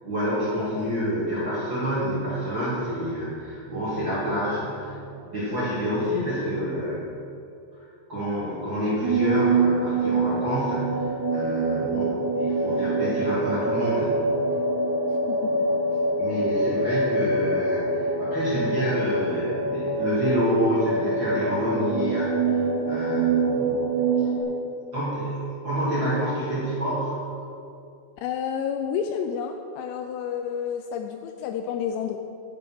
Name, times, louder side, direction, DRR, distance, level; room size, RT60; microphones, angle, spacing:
voice 1, 0.0-7.1 7.8-14.3 16.2-23.9 24.2-24.3 24.6-25.4 25.6-27.1, equal, 40° right, -10 dB, 1.8 m, -28 dB
voice 2, 0.5-1.0 6.0-6.3 15.3-15.7 23.7-23.8 28.2-32.2, left 8 dB, 85° left, 5 dB, 2.6 m, -30 dB
sound 1, 9.0-24.4, right 3 dB, 60° right, 2.9 m, -25 dB
11.5 x 7.1 x 6.1 m, 2.6 s
omnidirectional pair, 5.4 m